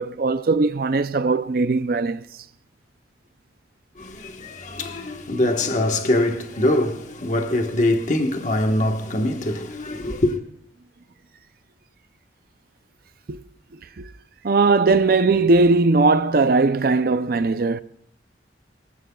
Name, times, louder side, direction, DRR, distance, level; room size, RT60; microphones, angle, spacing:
voice 1, 0.0-2.2 13.3-13.4 14.0-14.1 14.4-17.8, right 3 dB, 50° right, 0.5 m, -19 dB
voice 2, 4.0-10.4, left 1 dB, 40° left, 1.3 m, -23 dB
22.5 x 15.5 x 2.3 m
head